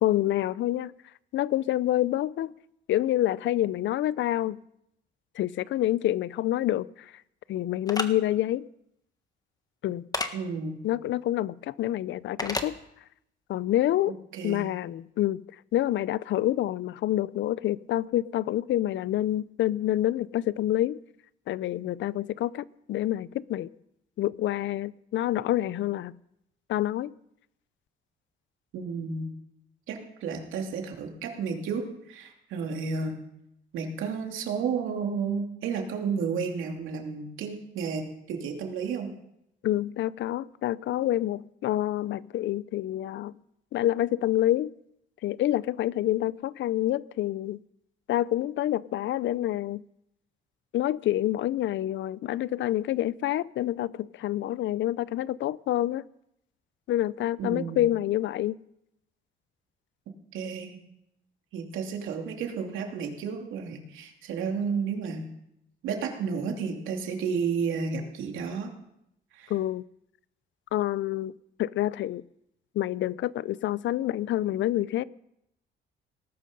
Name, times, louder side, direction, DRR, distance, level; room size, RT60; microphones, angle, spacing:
voice 1, 0.0-0.9 1.3-2.5 2.9-4.6 5.4-6.9 7.5-8.7 9.8-10.0 10.8-12.8 13.5-14.1 14.4-15.4 15.7-21.0 21.5-23.7 24.2-26.2 26.7-27.1 39.6-43.3 43.7-44.7 45.2-47.6 48.1-49.8 50.7-56.0 56.9-58.6 69.5-69.8 70.7-71.3 71.6-72.2 72.7-75.0, left 13 dB, 70° left, 0.5 m, -27 dB
sound 1, 7.9-8.1 10.1-10.3 12.4-12.7, left 2 dB, 20° left, 1.5 m, -29 dB
voice 2, 10.3-10.8 14.3-14.7 28.7-29.3 29.9-33.2 33.7-39.1 57.4-57.8 60.3-60.8 61.5-65.2 65.8-68.7 69.3-69.5, right 5 dB, 85° right, 2.8 m, -32 dB
18.5 x 12.0 x 5.3 m
cardioid pair, 90°, 20 cm